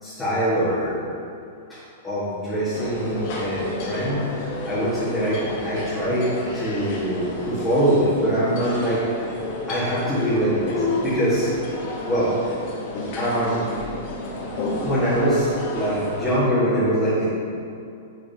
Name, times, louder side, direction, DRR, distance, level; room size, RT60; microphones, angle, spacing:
voice 1, 0.0-1.0 1.7-1.8 2.0-9.0 9.7-11.5 12.0-12.3 13.2-13.6 14.8-17.3, equal, 5° left, -14 dB, 1.7 m, -23 dB
public dinning room Ikea, 2.7-16.4, left 2 dB, 45° left, 1.2 m, -31 dB
7.3 x 6.7 x 2.9 m, 2.5 s
supercardioid pair, 165°, 0 cm